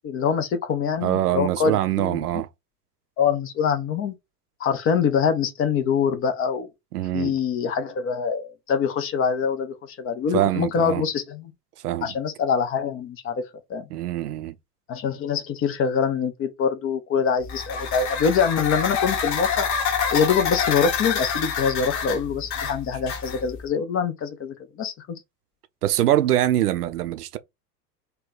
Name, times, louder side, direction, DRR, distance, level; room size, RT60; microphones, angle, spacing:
voice 1, 0.0-2.2 3.2-4.1 4.6-6.7 7.1-11.5 12.0-13.3 13.7-13.9 14.9-19.7 20.1-24.9, left 6 dB, 25° left, 0.7 m, -24 dB
voice 2, 1.0-2.5 6.9-7.3 10.3-11.0 11.8-12.1 13.9-14.5 25.8-27.4, right 13 dB, 70° right, 0.6 m, -23 dB
sound 1, 17.4-23.6, left 6 dB, 45° left, 1.3 m, -27 dB
3.2 x 2.2 x 3.9 m
figure-of-eight pair, 85°, 48 cm